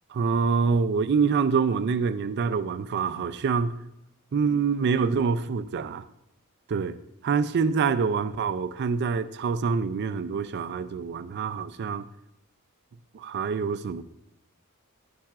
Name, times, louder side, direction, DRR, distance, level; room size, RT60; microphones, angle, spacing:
voice 1, 0.1-3.8 4.3-6.0 6.7-7.0 7.2-12.1 13.1-14.0, right 5 dB, 50° right, 13 dB, 0.4 m, -26 dB
10.0 x 7.3 x 2.4 m, 0.87 s
head